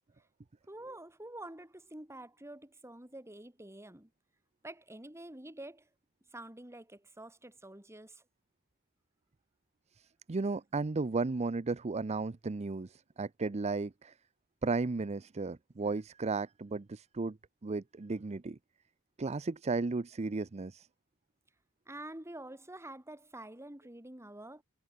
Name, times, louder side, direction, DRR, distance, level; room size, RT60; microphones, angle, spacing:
voice 1, 0.7-4.1 4.6-5.9 6.3-8.2 21.9-24.6, right 1 dB, 10° right, 2.6 m, -47 dB
voice 2, 10.0-14.1 14.6-17.4 17.6-18.6 19.2-20.9, right 3 dB, 30° right, 0.5 m, -34 dB
head